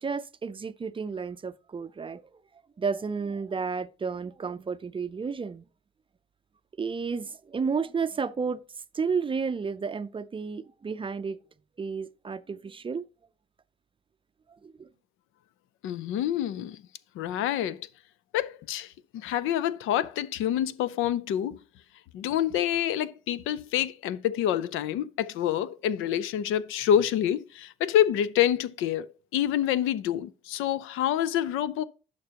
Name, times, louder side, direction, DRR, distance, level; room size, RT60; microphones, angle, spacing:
voice 1, 0.0-2.2 2.8-5.6 6.8-8.6 8.9-11.4 11.8-13.0 14.6-14.9, right 5 dB, 25° right, 0.4 m, -32 dB
voice 2, 15.8-16.8 17.1-17.9 18.3-21.6 22.1-29.1 29.3-31.8, left 10 dB, 85° left, 0.5 m, -27 dB
11.0 x 5.2 x 2.9 m
cardioid pair, 80°, 20 cm